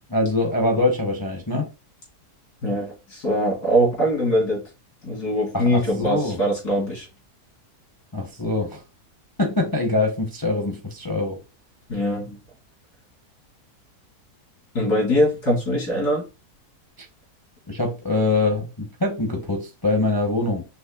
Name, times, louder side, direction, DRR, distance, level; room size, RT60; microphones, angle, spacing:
voice 1, 0.1-1.7 5.5-6.4 8.1-8.8 9.4-11.4 17.0-17.1 17.7-20.7, left 2 dB, 20° left, 0.6 m, -24 dB
voice 2, 2.6-4.6 5.0-7.1 11.9-12.4 14.7-16.2, equal, 90° left, 3.4 m, -22 dB
6.2 x 3.3 x 2.3 m
omnidirectional pair, 1.7 m